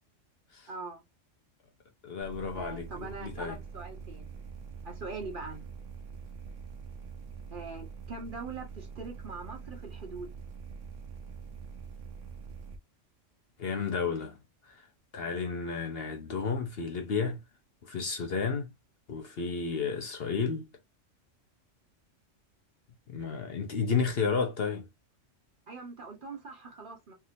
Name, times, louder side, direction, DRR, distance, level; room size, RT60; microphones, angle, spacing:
voice 1, 0.7-1.0 2.5-4.3 4.8-5.6 7.5-10.3 25.7-27.1, right 3 dB, 45° right, 1.1 m, -42 dB
voice 2, 2.0-3.6 13.6-14.4 14.6-14.7 15.1-17.4 17.8-18.7 19.1-20.7 23.1-24.9, left 5 dB, 60° left, 0.8 m, -32 dB
sound 1, 2.2-12.8, right 6 dB, 75° right, 1.1 m, -44 dB
3.4 x 2.7 x 2.5 m
omnidirectional pair, 1.3 m